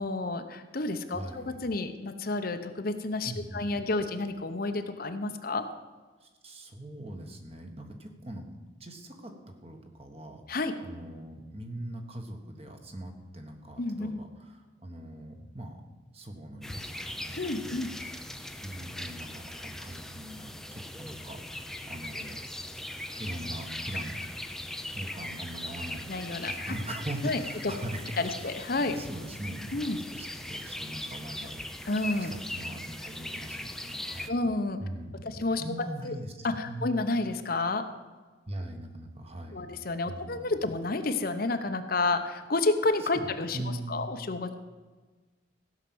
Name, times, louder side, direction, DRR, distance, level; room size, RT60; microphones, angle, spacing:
voice 1, 0.0-5.7 10.5-10.8 13.8-14.2 17.4-17.9 26.1-26.7 27.2-27.7 28.2-28.9 29.7-30.0 31.9-32.3 34.3-34.8 35.2-35.6 36.0-36.2 36.4-37.9 39.5-44.5, left 2 dB, 50° left, 8 dB, 0.8 m, -30 dB
voice 2, 1.1-1.6 3.2-3.8 6.2-8.4 8.8-9.3 9.6-10.4 10.8-15.8 16.1-17.4 17.6-18.0 18.6-22.4 23.1-24.2 24.9-26.1 26.4-28.5 28.8-29.8 30.1-31.9 32.2-34.4 34.8-37.0 38.5-39.7 40.1-40.5 43.0-44.1, right 1 dB, 30° right, 4 dB, 1.4 m, -41 dB
sound 1, 16.6-34.3, left 1 dB, ahead, 0.5 m, -40 dB
15.5 x 5.9 x 7.8 m, 1.3 s
head